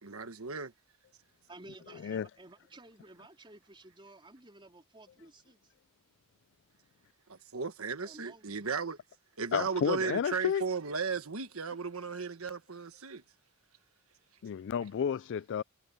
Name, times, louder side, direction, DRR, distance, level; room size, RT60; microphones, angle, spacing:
voice 1, 0.0-0.7 7.3-9.0 9.4-13.2, right 5 dB, 70° right, 1.4 m, -35 dB
voice 2, 1.5-5.7 8.0-8.6, right 2 dB, 25° right, 4.1 m, -54 dB
voice 3, 9.5-10.6 14.4-15.6, left 7 dB, 55° left, 0.3 m, -31 dB
head